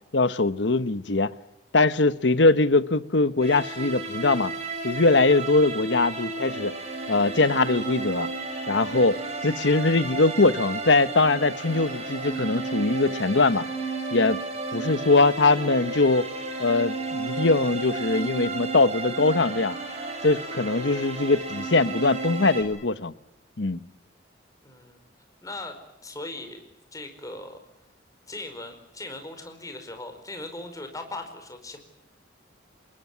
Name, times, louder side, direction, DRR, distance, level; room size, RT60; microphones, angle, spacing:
voice 1, 0.1-1.3 1.7-4.5 4.8-6.7 7.1-8.3 8.7-13.7 14.1-14.4 14.7-16.3 16.6-19.8 20.2-23.1 23.6-23.8, left 3 dB, 70° left, 1.1 m, -22 dB
sound 1, 3.4-22.6, right 3 dB, 35° right, 6.9 m, -33 dB
voice 2, 24.6-25.0 25.4-26.6 26.9-27.6 28.3-31.8, left 2 dB, 20° left, 4.9 m, -39 dB
27.0 x 21.0 x 9.7 m
head